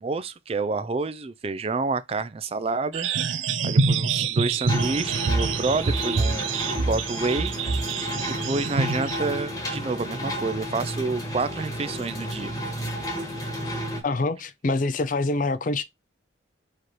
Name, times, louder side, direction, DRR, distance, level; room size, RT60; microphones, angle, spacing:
voice 1, 0.0-3.1 3.6-7.5 8.2-12.5, right 3 dB, 30° right, 0.3 m, -29 dB
sound 1, 2.9-9.2, right 4 dB, 80° right, 0.6 m, -26 dB
sound 2, 4.7-14.0, equal, 15° left, 1.3 m, -32 dB
voice 2, 14.0-15.8, left 2 dB, 45° left, 0.5 m, -25 dB
4.9 x 3.0 x 3.0 m
head